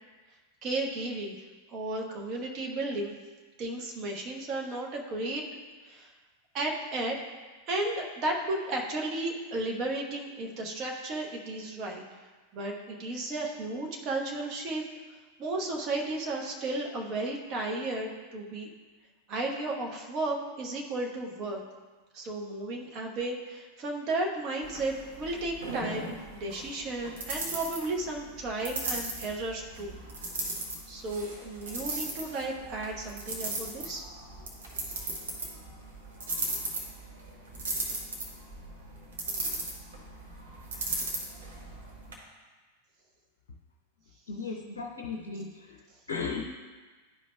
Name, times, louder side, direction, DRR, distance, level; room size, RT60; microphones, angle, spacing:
voice 1, 0.6-1.3 1.7-3.2 3.6-5.4 5.8-6.1 6.5-7.2 7.7-12.0 12.5-14.8 15.4-18.7 19.3-21.6 22.1-30.0 30.9-34.0, right 2 dB, 35° right, 0 dB, 1.1 m, -34 dB
sound 1, 24.6-42.1, right 2 dB, 65° right, 1.4 m, -37 dB
voice 2, 44.3-45.8 46.1-46.6, left 4 dB, 65° left, 2 dB, 0.5 m, -36 dB
11.5 x 5.1 x 2.3 m, 1.4 s
figure-of-eight pair, 90°, 0 cm